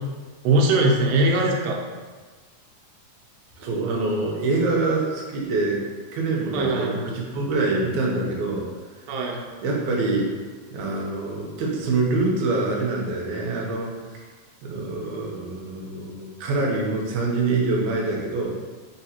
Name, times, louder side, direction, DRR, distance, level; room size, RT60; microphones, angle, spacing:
voice 1, 0.4-1.8 6.5-7.0 9.1-9.4, right 2 dB, 90° right, 0 dB, 2.4 m, -21 dB
voice 2, 3.6-5.8 6.1-8.6 9.1-9.2 9.6-10.3 10.7-13.9 14.6-18.5, right 3 dB, 75° right, -2 dB, 2.0 m, -25 dB
4.6 x 3.9 x 2.8 m, 1.4 s
omnidirectional pair, 3.9 m